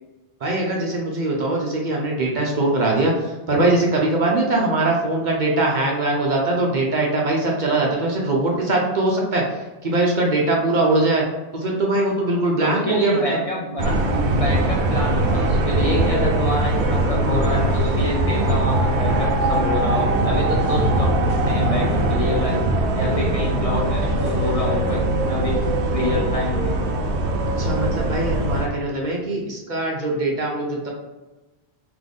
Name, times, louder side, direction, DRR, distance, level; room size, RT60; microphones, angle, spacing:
voice 1, 0.4-11.2 11.5-13.2 27.6-30.9, right 2 dB, 50° right, -1 dB, 0.7 m, -21 dB
voice 2, 12.6-22.6 22.9-25.6 25.9-26.8, left 1 dB, 40° left, -3 dB, 0.7 m, -26 dB
sound 1, 13.8-28.7, right 1 dB, 85° right, 0.9 m, -21 dB
3.8 x 2.9 x 3.5 m, 1.1 s
omnidirectional pair, 1.1 m